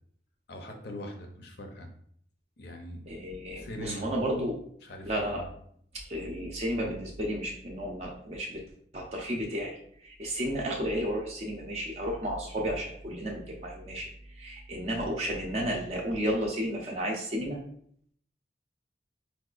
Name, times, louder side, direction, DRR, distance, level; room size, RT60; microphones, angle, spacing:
voice 1, 0.5-1.9 2.6-3.0 3.6-4.1 4.8-5.5, left 1 dB, 60° left, 4 dB, 0.5 m, -41 dB
voice 2, 3.1-4.6 5.0-5.4 6.1-8.6 8.9-17.6, equal, 35° right, -1 dB, 0.5 m, -32 dB
4.6 x 2.2 x 2.4 m, 0.64 s
head